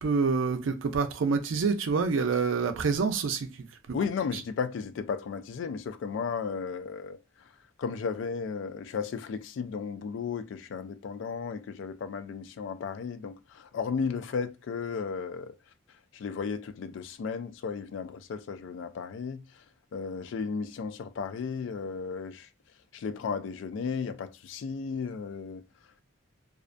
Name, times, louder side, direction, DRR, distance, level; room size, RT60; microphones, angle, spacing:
voice 1, 0.0-3.5 3.9-4.0, right 5 dB, 80° right, 0.4 m, -27 dB
voice 2, 3.9-7.2 7.8-15.5 16.1-19.4 19.9-22.5 22.9-25.6, left 5 dB, 70° left, 0.3 m, -34 dB
2.4 x 2.1 x 2.4 m
head